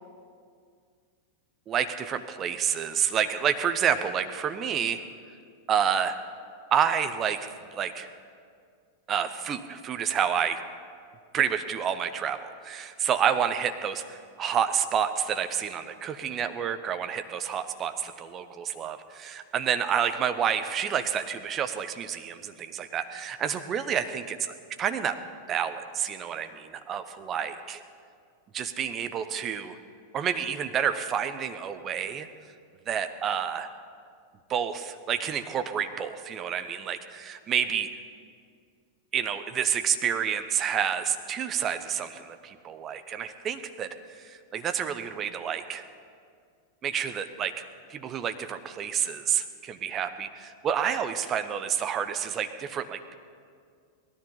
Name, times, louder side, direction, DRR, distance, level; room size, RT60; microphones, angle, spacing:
voice 1, 1.7-5.0 5.7-6.2 6.7-8.1 9.1-10.6 11.3-25.2 25.5-27.8 28.5-29.8 30.1-32.3 32.9-33.7 34.5-37.9 39.1-45.8 46.8-47.6 47.9-53.2, right 8 dB, 30° right, 9 dB, 0.9 m, -29 dB
18.5 x 13.0 x 5.6 m, 2.2 s
figure-of-eight pair, 90°, 0 cm